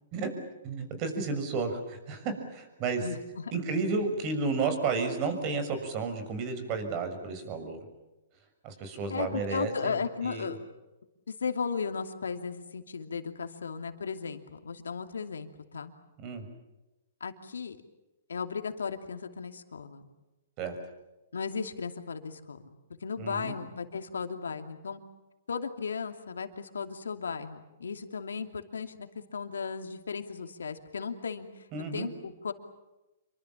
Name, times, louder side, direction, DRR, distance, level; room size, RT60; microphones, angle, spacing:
voice 1, 0.6-3.1 3.5-7.8 8.6-10.0 10.2-10.5 16.2-16.4 20.6-20.7 23.2-23.5 31.7-32.1, right 4 dB, 35° right, 8 dB, 6.5 m, -32 dB
voice 2, 3.0-3.5 9.1-10.6 11.3-15.9 17.2-17.8 18.3-20.1 21.3-22.6 23.0-25.0 25.5-32.5, left 5 dB, 90° left, 6 dB, 2.7 m, -36 dB
28.0 x 24.5 x 7.4 m, 1.0 s
hypercardioid pair, 135°, 0 cm